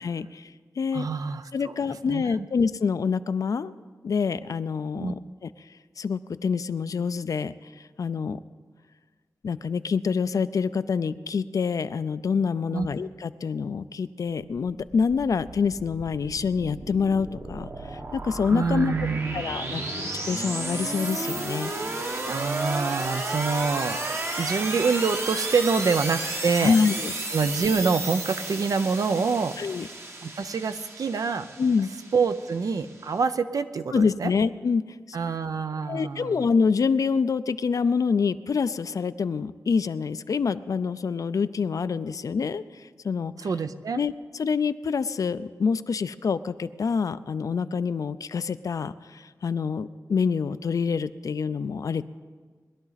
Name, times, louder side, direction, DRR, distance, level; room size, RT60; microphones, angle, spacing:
voice 1, 0.0-0.5 0.8-1.1 1.5-3.7 4.0-5.2 6.0-7.5 8.0-8.4 9.4-18.9 19.3-21.7 26.6-27.1 29.6-29.9 31.6-31.9 33.9-35.2 35.9-43.3 43.9-44.1 44.4-52.0, left 5 dB, 70° left, 14 dB, 0.4 m, -26 dB
voice 2, 0.9-2.5 5.0-5.1 12.7-12.9 18.5-19.9 22.3-26.8 27.3-29.6 30.2-31.5 32.1-34.3 35.1-36.5 43.4-44.0, right 5 dB, 75° right, 11 dB, 0.6 m, -26 dB
sound 1, 14.6-33.2, right 2 dB, 45° right, 1.1 m, -33 dB
20.5 x 12.0 x 4.0 m, 1.5 s
wide cardioid pair, 125°, 6 cm